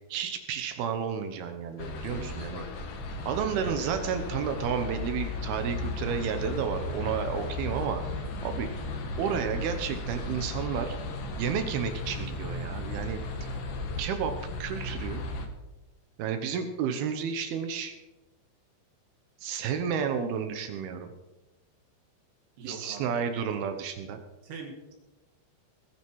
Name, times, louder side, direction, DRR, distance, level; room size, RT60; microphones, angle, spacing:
voice 1, 0.1-2.6 3.3-8.7 9.2-10.9 11.4-13.5 14.0-14.3 14.6-15.2 16.2-17.9 19.4-21.1 22.6-24.2, right 7 dB, 85° right, 7 dB, 2.2 m, -31 dB
sound 1, 1.8-15.5, left 2 dB, 65° left, 2.2 m, -35 dB
voice 2, 3.5-3.9 22.6-23.5 24.4-24.9, right 5 dB, 60° right, 3 dB, 3.4 m, -42 dB
20.0 x 10.5 x 4.7 m, 1.1 s
omnidirectional pair, 5.9 m